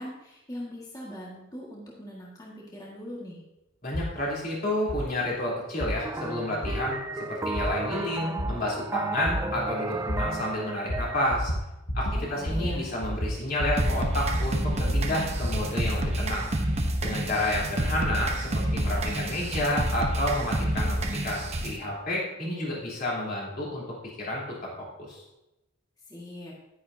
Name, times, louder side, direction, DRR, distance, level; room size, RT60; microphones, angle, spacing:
voice 1, 0.0-3.4 12.1-12.8 26.1-26.5, equal, 20° left, -4 dB, 1.7 m, -41 dB
voice 2, 3.8-11.5 11.9-16.5 17.0-23.8 24.2-24.4 25.0-25.2, left 1 dB, 45° left, -5 dB, 3.5 m, -30 dB
sound 1, 3.9-4.1 4.9-5.0 5.8-5.9 6.6-6.7 7.6-7.7 8.4-8.5 9.3-9.4 10.1-10.2 10.9-11.0 11.3-11.6 11.9-12.2 12.4-12.7 13.0-13.9 14.2-15.6, equal, 80° left, 1.6 m, -30 dB
sound 2, 6.0-11.3, right 3 dB, 15° right, 0.3 m, -34 dB
sound 3, 13.8-21.8, right 1 dB, 30° right, 0.9 m, -28 dB
11.0 x 9.9 x 2.7 m, 0.95 s
head